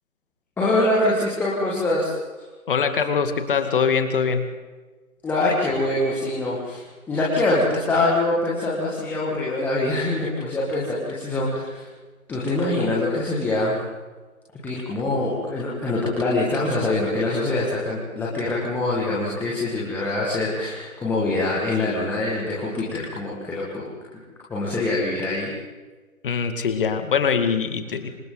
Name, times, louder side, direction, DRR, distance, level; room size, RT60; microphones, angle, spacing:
voice 1, 0.6-2.4 5.2-11.8 12.3-13.8 14.5-23.9 24.5-25.5, left 2 dB, 5° left, -6 dB, 1.9 m, -24 dB
voice 2, 2.7-4.5 26.2-28.1, left 6 dB, 40° left, 8 dB, 2.1 m, -22 dB
27.0 x 25.5 x 4.0 m, 1.3 s
figure-of-eight pair, 150°, 42 cm